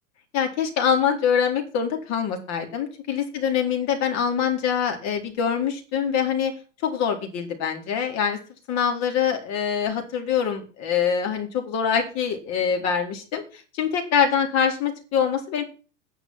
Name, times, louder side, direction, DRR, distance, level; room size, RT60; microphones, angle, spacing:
voice 1, 0.3-6.5 6.8-8.4 8.7-15.6, left 7 dB, 45° left, 4 dB, 4.0 m, -24 dB
10.0 x 8.9 x 6.2 m, 0.36 s
hypercardioid pair, 110°, 37 cm